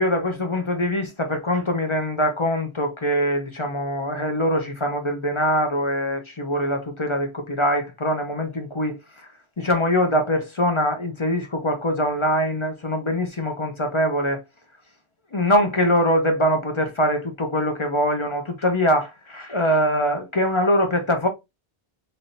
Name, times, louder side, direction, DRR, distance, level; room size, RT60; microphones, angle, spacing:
voice 1, 0.0-9.0 9.6-14.4 15.3-21.3, equal, 35° left, 0.6 m, -23 dB
3.4 x 2.6 x 2.6 m
omnidirectional pair, 1.1 m